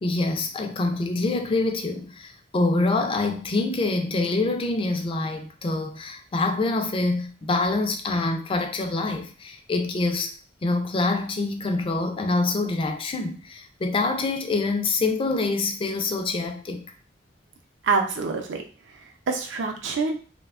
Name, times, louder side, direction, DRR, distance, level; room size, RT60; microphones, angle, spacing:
voice 1, 0.0-10.3 10.6-16.9, left 3 dB, 30° left, 0.3 m, -25 dB
voice 2, 17.8-20.2, right 4 dB, 80° right, 0.5 m, -27 dB
2.7 x 2.1 x 2.4 m
head